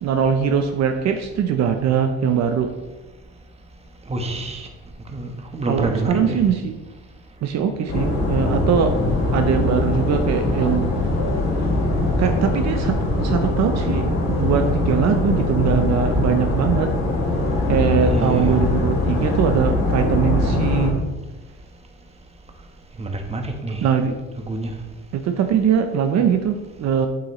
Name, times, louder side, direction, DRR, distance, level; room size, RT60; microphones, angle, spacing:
voice 1, 0.0-2.7 5.7-6.8 7.4-9.0 9.3-10.9 12.2-12.9 13.2-16.9 17.7-21.0 23.8-24.1 25.1-27.1, right 7 dB, 60° right, 6 dB, 0.7 m, -21 dB
voice 2, 4.1-4.7 5.1-6.4 18.0-18.6 23.0-23.8 24.5-24.7, right 2 dB, 20° right, 3 dB, 1.1 m, -26 dB
sound 1, 7.9-20.9, left 2 dB, 65° left, 2.7 m, -21 dB
8.3 x 7.8 x 3.1 m, 1.1 s
cardioid pair, 120°, 30 cm